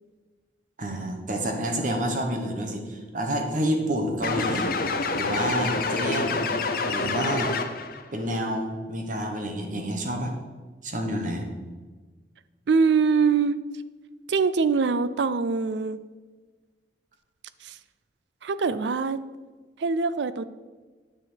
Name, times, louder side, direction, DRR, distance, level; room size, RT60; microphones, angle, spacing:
voice 1, 0.8-4.7 5.1-6.5 6.8-7.5 8.1-10.3 10.8-11.5, equal, 45° right, 3 dB, 1.2 m, -28 dB
sound 1, 4.2-8.0, left 4 dB, 55° left, 0.7 m, -27 dB
voice 2, 12.7-13.6 14.3-16.0 17.6-17.8 18.4-19.2 19.8-20.4, right 5 dB, 80° right, 15 dB, 0.4 m, -23 dB
9.4 x 6.2 x 4.7 m, 1.4 s
head